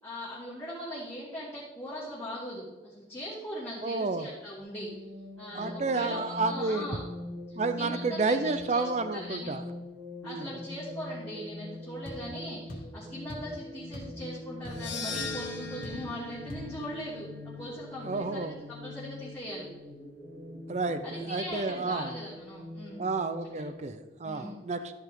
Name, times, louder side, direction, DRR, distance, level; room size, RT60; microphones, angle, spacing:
voice 1, 0.0-4.9 5.4-7.0 7.5-9.5 10.2-17.3 17.6-19.7 21.0-23.0 24.2-24.6, equal, 15° left, -11 dB, 2.8 m, -40 dB
voice 2, 3.8-4.3 5.5-6.9 7.6-9.6 10.2-10.5 18.0-18.6 20.7-22.1 23.0-24.9, right 3 dB, 40° right, 10 dB, 0.5 m, -30 dB
sound 1, 4.6-23.8, left 2 dB, 70° right, 1.8 m, -43 dB
sound 2, 12.0-12.2 12.7-12.9 13.3-13.5 13.9-14.2 14.4-14.9 15.2-15.3 15.8-16.1 16.5-16.7, equal, 50° left, 2.3 m, -42 dB
sound 3, 14.7-19.0, left 4 dB, 90° left, 1.2 m, -41 dB
13.5 x 5.6 x 3.7 m, 1.2 s
head